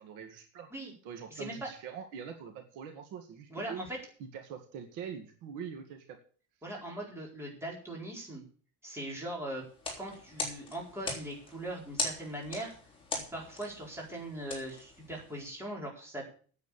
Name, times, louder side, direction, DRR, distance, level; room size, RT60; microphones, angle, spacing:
voice 1, 0.0-0.7 1.0-3.9 4.2-6.2, right 7 dB, 65° right, 5 dB, 2.1 m, -44 dB
voice 2, 1.3-1.7 3.5-4.0 6.6-8.4 8.8-9.6 10.0-12.7 13.3-16.2, right 1 dB, 5° right, -2 dB, 4.6 m, -40 dB
sound 1, 9.7-15.5, left 2 dB, 15° left, 3.6 m, -40 dB
9.7 x 8.1 x 8.6 m, 0.42 s
cardioid pair, 170°, 34 cm